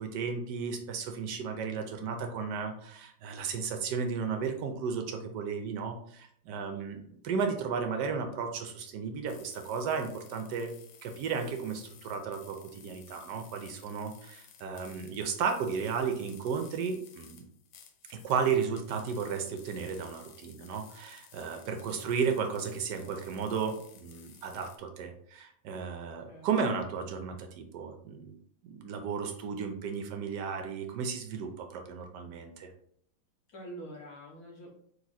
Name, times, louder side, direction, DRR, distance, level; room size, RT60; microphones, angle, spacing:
voice 1, 0.0-10.7 11.0-17.4 18.1-28.4 28.6-32.7, right 6 dB, 75° right, 4 dB, 1.0 m, -34 dB
sound 1, 9.3-24.8, left 8 dB, 90° left, 1.5 m, -56 dB
voice 2, 33.5-34.7, right 1 dB, 60° left, -2 dB, 1.0 m, -46 dB
4.1 x 2.6 x 4.0 m, 0.66 s
omnidirectional pair, 2.3 m